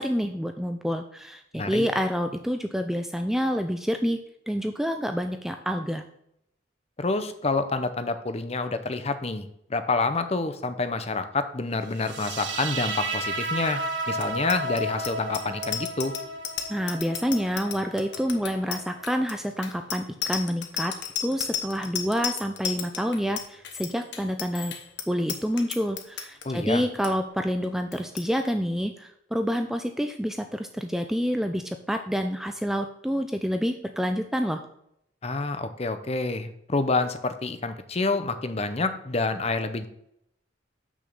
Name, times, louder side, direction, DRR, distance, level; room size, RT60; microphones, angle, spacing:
voice 1, 0.0-4.2 4.5-6.0 16.7-20.9 21.2-24.7 25.1-34.6, equal, ahead, 6 dB, 0.4 m, -28 dB
voice 2, 1.5-1.9 7.0-13.8 14.1-16.1 26.4-26.8 35.2-39.9, left 3 dB, 30° left, 10 dB, 0.7 m, -28 dB
sound 1, 12.0-19.0, right 1 dB, 65° right, 1.0 m, -33 dB
Bicycle bell, 14.2-26.5 26.8-27.1 27.4-27.7 27.9-28.3, left 8 dB, 60° left, 1.0 m, -34 dB
6.2 x 6.1 x 7.0 m, 0.76 s
head